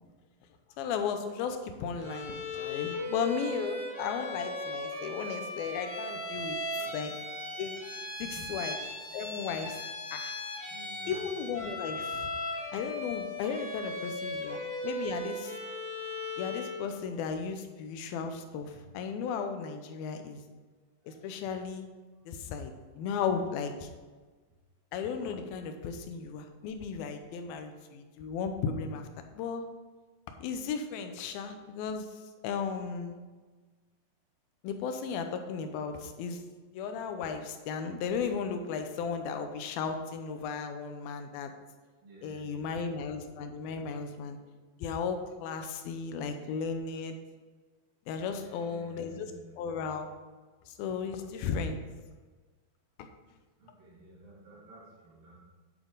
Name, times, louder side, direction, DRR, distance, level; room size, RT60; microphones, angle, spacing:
voice 1, 0.8-6.6 6.9-7.1 7.6-7.8 8.2-8.8 9.1-9.8 10.1-10.3 11.1-12.3 12.7-15.5 16.4-20.4 21.1-21.9 22.3-23.9 24.9-29.1 29.3-29.7 30.4-32.1 32.4-33.2 34.6-36.4 36.7-41.5 42.2-44.4 44.8-47.2 48.1-50.1 50.7-51.8 53.0-53.1, left 6 dB, 85° left, 6 dB, 2.6 m, -35 dB
Bowed string instrument, 2.0-16.9, left 1 dB, 35° right, 1.3 m, -38 dB
voice 2, 8.2-8.6 10.7-11.3 13.5-13.6 14.0-14.2 18.7-18.8 21.0-21.5 22.1-22.2 42.0-42.8 48.2-49.6 53.6-55.4, right 1 dB, 70° right, -6 dB, 4.4 m, -54 dB
9.4 x 8.1 x 3.8 m, 1.4 s
omnidirectional pair, 4.2 m